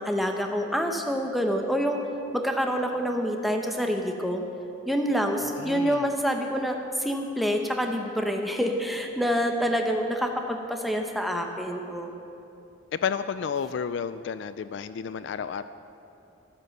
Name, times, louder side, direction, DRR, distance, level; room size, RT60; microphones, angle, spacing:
voice 1, 0.0-2.0 2.3-4.4 4.9-12.1, equal, ahead, 3 dB, 0.8 m, -27 dB
voice 2, 5.6-6.1 12.9-15.6, left 7 dB, 60° left, 13 dB, 0.3 m, -31 dB
12.5 x 9.1 x 6.6 m, 2.8 s
head